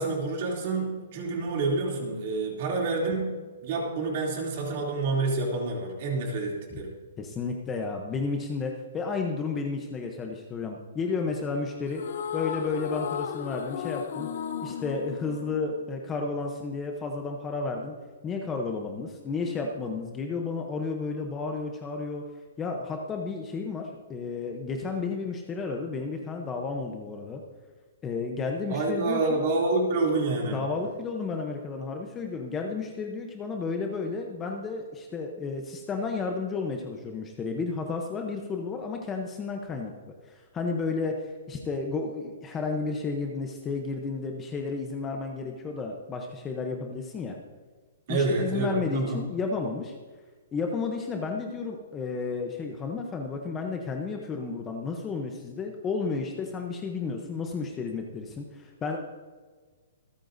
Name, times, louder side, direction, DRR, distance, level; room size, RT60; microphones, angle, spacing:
voice 1, 0.0-3.3 3.6-6.9 28.7-30.6 48.1-49.2, right 3 dB, 35° right, -1 dB, 2.8 m, -28 dB
voice 2, 7.2-12.0 12.3-14.3 14.6-18.0 18.2-22.2 22.6-27.4 28.0-29.5 30.5-39.9 40.2-47.4 48.1-49.9 50.5-59.0, left 4 dB, 10° left, 2 dB, 0.7 m, -32 dB
sound 1, 11.9-16.3, left 8 dB, 45° left, 0.6 m, -35 dB
26.5 x 9.1 x 2.6 m, 1.4 s
hypercardioid pair, 175°, 0 cm